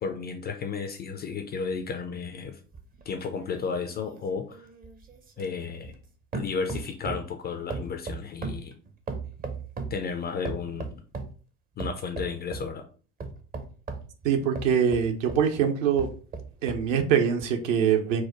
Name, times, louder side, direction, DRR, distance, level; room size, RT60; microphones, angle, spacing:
voice 1, 0.0-2.5 3.1-4.7 5.4-5.9 6.3-8.7 9.9-11.0 11.8-12.8, left 5 dB, 20° left, 6 dB, 0.4 m, -33 dB
sound 1, 2.7-6.1 6.3-7.3 7.7-10.0 10.4-11.4 11.8-12.7 13.2-15.5 15.9-16.9 17.4-17.5, right 4 dB, 20° right, 0.6 m, -37 dB
voice 2, 14.2-16.1 16.6-18.2, right 7 dB, 55° right, 5 dB, 0.9 m, -23 dB
4.6 x 2.2 x 4.4 m, 0.39 s
figure-of-eight pair, 70°, 47 cm